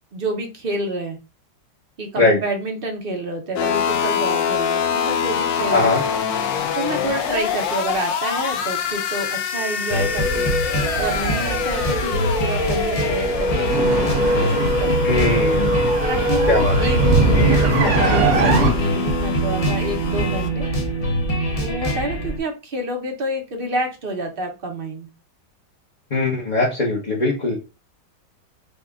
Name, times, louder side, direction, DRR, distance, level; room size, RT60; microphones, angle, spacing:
voice 1, 0.1-1.2 2.0-6.0 6.7-10.5 11.0-15.2 16.1-20.7 21.6-25.1, right 1 dB, 40° right, 3 dB, 0.8 m, -29 dB
sound 1, 3.6-20.5, left 7 dB, 85° left, 1.4 m, -26 dB
voice 2, 5.7-6.0 15.0-16.0 16.5-16.8 26.1-27.5, left 2 dB, 30° left, -5 dB, 0.9 m, -20 dB
sound 2, 9.9-22.4, equal, 60° left, 0.3 m, -22 dB
sound 3, 13.7-18.7, right 3 dB, 85° right, 1.9 m, -20 dB
5.4 x 2.4 x 3.5 m, 0.28 s
omnidirectional pair, 2.0 m